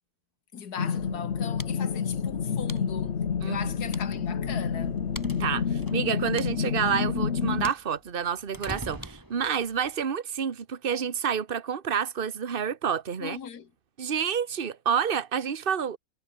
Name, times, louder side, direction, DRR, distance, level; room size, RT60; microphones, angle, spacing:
voice 1, 0.5-3.2 3.4-5.0 13.2-13.7, left 7 dB, 85° left, 2.2 m, -39 dB
sound 1, 0.8-7.7, left 6 dB, 50° left, 1.4 m, -29 dB
sound 2, 1.2-9.4, left 1 dB, 10° left, 5.3 m, -50 dB
sound 3, 4.6-9.9, right 1 dB, 10° right, 3.3 m, -44 dB
voice 2, 5.4-13.4 14.0-16.0, right 7 dB, 35° right, 1.4 m, -29 dB
omnidirectional pair, 1.6 m